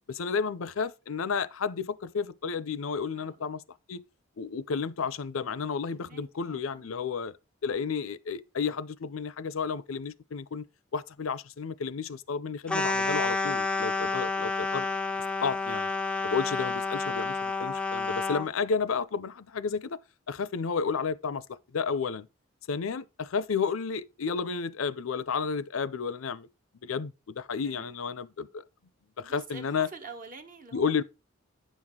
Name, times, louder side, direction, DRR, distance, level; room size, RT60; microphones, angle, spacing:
voice 1, 0.1-3.6 3.9-4.0 4.4-7.4 7.6-10.7 10.9-14.9 15.4-15.9 16.2-20.0 20.3-21.4 21.7-22.3 22.7-26.5 26.8-28.6 29.2-29.9 30.7-31.0, left 5 dB, 85° left, 0.5 m, -32 dB
voice 2, 3.1-3.5 5.8-7.1 26.8-27.1 27.6-27.9 29.2-31.0, right 4 dB, 40° right, 1.2 m, -48 dB
sound 1, 12.7-18.5, left 3 dB, 5° left, 0.4 m, -29 dB
9.2 x 6.2 x 3.7 m
head